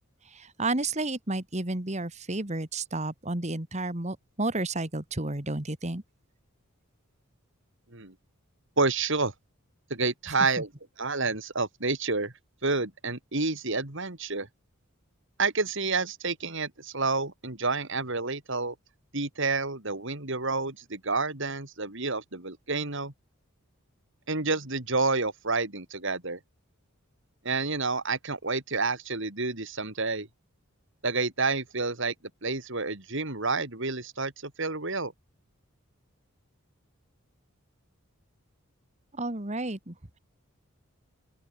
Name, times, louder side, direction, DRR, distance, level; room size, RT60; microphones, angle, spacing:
voice 1, 0.3-6.0 10.3-10.6 39.1-39.9, right 2 dB, 30° right, 2.1 m, -32 dB
voice 2, 8.8-9.3 9.9-10.7 11.0-12.3 12.6-14.5 15.4-18.7 19.1-23.1 24.3-26.4 27.4-30.3 31.0-32.1 32.4-35.1, right 3 dB, 60° right, 3.3 m, -29 dB
open air
head